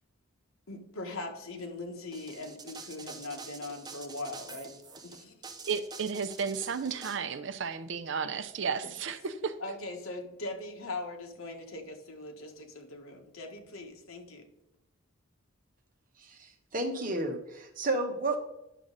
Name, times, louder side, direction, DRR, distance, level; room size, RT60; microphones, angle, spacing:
voice 1, 0.7-4.7 5.0-5.3 9.6-14.4, left 2 dB, 80° left, 1.6 m, -40 dB
sound 1, 2.1-7.2, right 4 dB, 20° right, 0.8 m, -46 dB
voice 2, 5.7-9.6, right 6 dB, 60° right, 0.6 m, -33 dB
voice 3, 16.2-18.4, right 2 dB, 40° right, 1.2 m, -32 dB
10.0 x 6.3 x 4.0 m
head